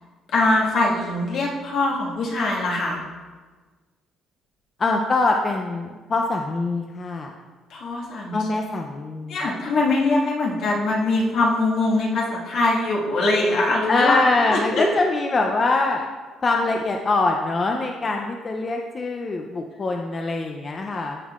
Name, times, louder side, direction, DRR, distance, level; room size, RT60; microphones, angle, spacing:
voice 1, 0.3-3.0 7.7-8.5 9.3-14.2 14.5-14.9, left 2 dB, 60° left, -3 dB, 1.7 m, -22 dB
voice 2, 4.8-7.3 8.3-9.4 13.9-16.1 16.4-21.2, left 3 dB, 30° left, 2 dB, 0.5 m, -23 dB
15.0 x 5.5 x 2.4 m, 1.4 s
cardioid pair, 145°, 0 cm